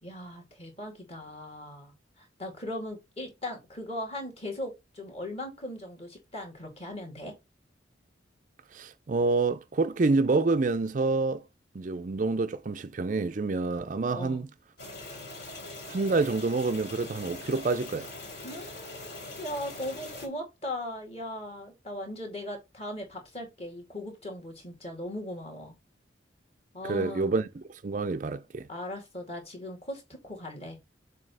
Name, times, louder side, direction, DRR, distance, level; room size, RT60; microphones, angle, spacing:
voice 1, 0.0-7.3 14.1-14.5 18.4-25.7 26.7-27.4 28.7-30.8, left 1 dB, 30° left, 2.5 m, -39 dB
voice 2, 8.7-11.4 11.7-14.5 15.9-18.1 26.8-28.7, right 3 dB, 40° right, 0.4 m, -27 dB
sound 1, 14.8-20.3, left 2 dB, 55° left, 2.9 m, -42 dB
7.4 x 2.8 x 5.4 m
head